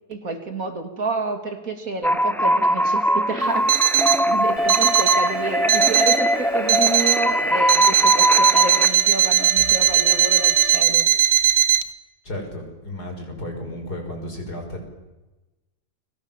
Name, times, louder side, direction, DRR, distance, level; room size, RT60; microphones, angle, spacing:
voice 1, 0.1-3.7 4.0-11.6, right 3 dB, 60° right, 6 dB, 3.3 m, -29 dB
sound 1, 2.0-8.9, equal, ahead, 1.3 m, -21 dB
Alarm, 3.7-4.3 4.7-5.3 5.7-6.3 6.7-7.3 7.7-11.8, right 11 dB, 85° right, 1.7 m, -18 dB
Alarm 2, 4.6-10.8, equal, 45° left, 4.2 m, -37 dB
voice 2, 12.2-14.8, left 1 dB, 80° left, 3 dB, 6.4 m, -33 dB
29.5 x 23.5 x 7.5 m, 1.1 s
omnidirectional pair, 1.7 m